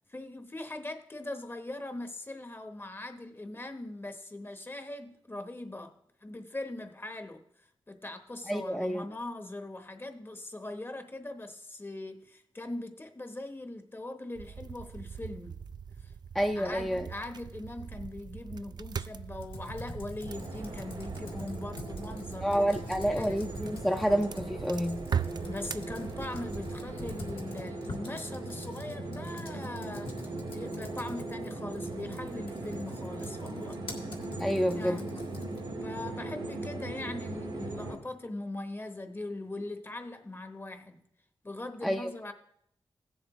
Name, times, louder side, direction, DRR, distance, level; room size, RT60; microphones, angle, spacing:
voice 1, 0.1-6.0 6.2-7.4 7.9-15.6 16.0-16.1 16.5-22.7 23.2-23.4 25.5-33.8 34.7-35.2 35.8-41.0 41.4-42.3, left 2 dB, 25° left, 1.0 m, -41 dB
voice 2, 8.5-9.1 16.3-17.1 22.4-25.0 34.4-35.0 41.8-42.1, equal, 5° left, 0.5 m, -29 dB
sound 1, 14.4-27.4, right 7 dB, 55° right, 0.3 m, -41 dB
Computer keyboard, 19.3-35.8, left 2 dB, 75° left, 1.7 m, -46 dB
sound 2, 20.2-38.0, right 2 dB, 90° right, 1.7 m, -39 dB
16.0 x 7.3 x 3.1 m
cardioid pair, 60°, 9 cm